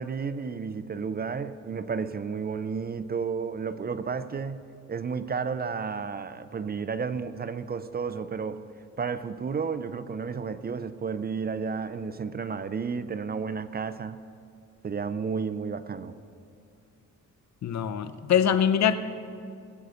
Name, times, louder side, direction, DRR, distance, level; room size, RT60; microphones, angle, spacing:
voice 1, 0.0-8.6 9.0-14.2 14.8-16.2, right 5 dB, 30° right, 0.5 m, -32 dB
voice 2, 17.6-18.9, left 8 dB, 60° left, 0.8 m, -23 dB
20.5 x 8.2 x 5.0 m
cardioid pair, 95°, 31 cm